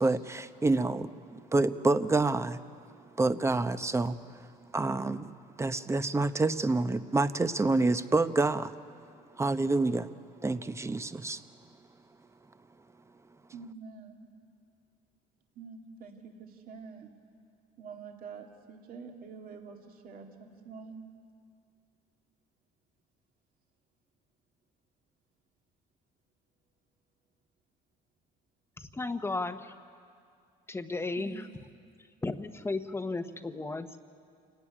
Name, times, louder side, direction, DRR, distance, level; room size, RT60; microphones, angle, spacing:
voice 1, 0.0-2.6 3.2-4.5 4.7-5.3 5.6-8.7 9.4-10.1 10.4-11.4, right 3 dB, 15° right, 0.8 m, -28 dB
voice 2, 13.5-14.3 15.5-17.1 17.8-21.1 31.2-31.6, right 5 dB, 60° right, 2.4 m, -46 dB
voice 3, 28.8-29.7 30.7-31.5 32.2-34.0, left 3 dB, 15° left, 1.1 m, -34 dB
27.0 x 17.5 x 9.9 m
cardioid pair, 110°, 17 cm